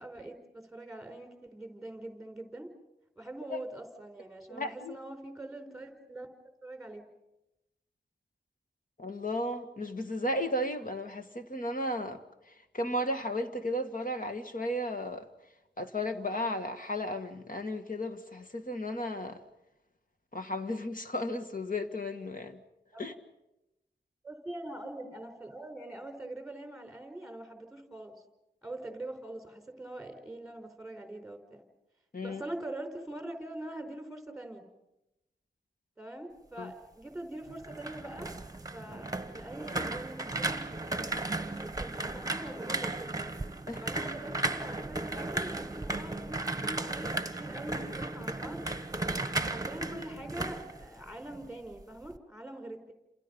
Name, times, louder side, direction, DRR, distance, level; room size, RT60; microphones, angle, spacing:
voice 1, 0.0-2.7 3.2-6.3 6.6-7.0 22.9-23.2 24.2-28.1 28.6-31.6 32.2-34.7 36.0-38.3 38.7-40.7 41.5-43.2 43.8-48.6 49.3-52.9, right 1 dB, ahead, 5 dB, 4.6 m, -43 dB
voice 2, 4.5-5.0 9.0-12.2 12.5-15.2 15.8-19.4 20.3-22.6 23.0-23.1 32.1-32.4 36.6-36.7 43.7-43.8, left 1 dB, 50° left, 6 dB, 2.0 m, -34 dB
sound 1, 37.5-51.5 51.8-52.2, right 2 dB, 20° right, 1.2 m, -35 dB
30.0 x 27.5 x 5.5 m, 0.93 s
wide cardioid pair, 90°, 18 cm